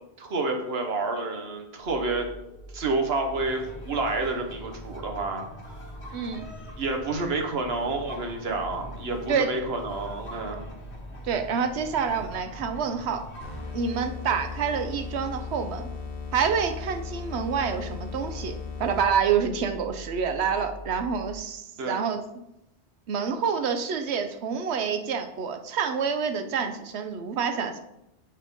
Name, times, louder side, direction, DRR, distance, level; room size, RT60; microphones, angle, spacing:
voice 1, 0.2-2.3 2.7-5.4 6.8-10.7 21.8-22.0, right 3 dB, 70° right, 4 dB, 1.2 m, -29 dB
sound 1, 1.8-21.4, equal, 55° right, 3.0 m, -44 dB
sound 2, 3.2-13.8, equal, 90° left, 1.5 m, -44 dB
voice 2, 6.1-6.5 9.3-9.5 11.2-13.2 13.7-15.9 16.3-22.2 23.1-27.8, right 6 dB, 85° right, 7 dB, 1.0 m, -27 dB
sound 3, 13.4-19.3, left 6 dB, 60° left, 1.1 m, -38 dB
7.2 x 3.6 x 5.3 m, 0.85 s
omnidirectional pair, 1.1 m